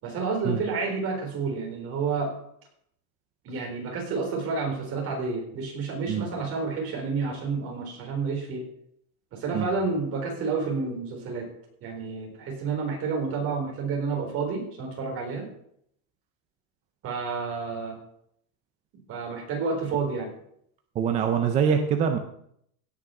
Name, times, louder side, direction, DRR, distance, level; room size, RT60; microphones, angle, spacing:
voice 1, 0.0-2.3 3.4-8.7 9.3-11.5 11.8-15.5 17.0-18.0 19.1-20.3, right 4 dB, 30° right, 0 dB, 4.1 m, -30 dB
voice 2, 21.0-22.2, right 7 dB, 15° right, 6 dB, 0.4 m, -24 dB
16.5 x 6.3 x 5.8 m, 0.70 s
supercardioid pair, 170°, 43 cm